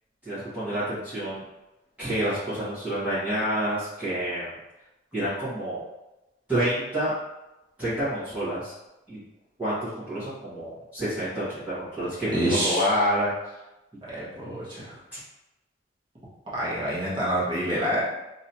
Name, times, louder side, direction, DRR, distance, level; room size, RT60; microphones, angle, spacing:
voice 1, 0.2-1.4 2.0-4.5 5.1-5.8 6.5-7.1 7.8-8.7 9.1-9.2 9.6-13.5 15.1-15.2, equal, 10° right, -15 dB, 1.4 m, -28 dB
voice 2, 12.3-12.9 14.1-14.9 16.5-18.0, right 1 dB, 25° right, -9 dB, 1.2 m, -27 dB
3.1 x 2.8 x 2.7 m, 0.96 s
head